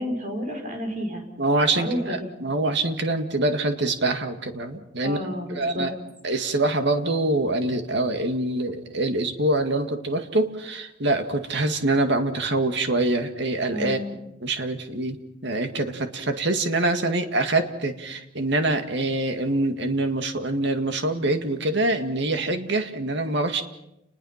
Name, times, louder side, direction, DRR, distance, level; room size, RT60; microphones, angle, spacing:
voice 1, 0.0-1.2 1.7-2.3 5.0-5.9 13.7-14.2, equal, 40° right, 3 dB, 5.3 m, -30 dB
voice 2, 1.4-5.2 5.6-5.9 6.2-14.0 14.4-23.6, right 2 dB, 60° right, 6 dB, 2.1 m, -25 dB
29.5 x 20.5 x 5.9 m, 0.86 s
head